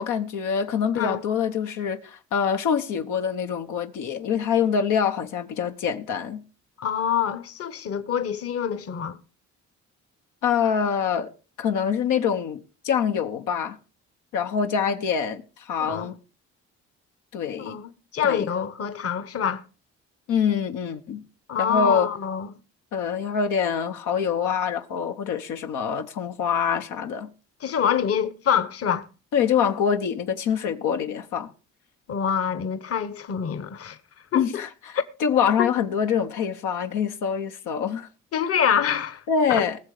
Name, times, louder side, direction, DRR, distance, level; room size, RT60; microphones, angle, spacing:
voice 1, 0.0-6.4 10.4-11.3 11.6-13.8 14.3-16.2 17.3-17.8 18.2-18.5 20.3-21.2 21.6-22.1 22.9-27.3 29.3-31.5 34.3-38.1 39.3-39.8, left 7 dB, 90° left, 1.1 m, -25 dB
voice 2, 6.8-9.2 15.8-16.1 17.6-19.6 21.5-22.5 27.6-29.1 32.1-34.0 34.3-34.5 35.6-35.7 38.3-39.2 39.5-39.7, left 8 dB, 50° left, 1.1 m, -26 dB
19.5 x 6.8 x 4.9 m
cardioid pair, 90°, 30 cm